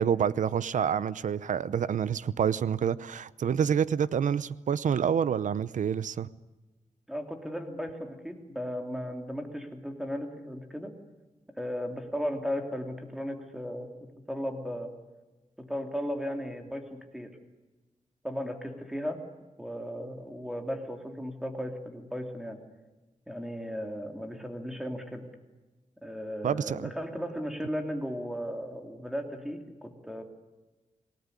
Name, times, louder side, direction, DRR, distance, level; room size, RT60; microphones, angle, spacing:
voice 1, 0.0-6.3 26.4-26.9, right 8 dB, 85° right, 0.8 m, -27 dB
voice 2, 7.1-10.9 11.6-13.9 14.3-14.9 15.6-17.3 18.2-19.2 19.6-22.6 23.3-25.2 26.0-30.2, equal, 5° right, 2.9 m, -36 dB
27.0 x 18.5 x 10.0 m
wide cardioid pair, 170°, 13 cm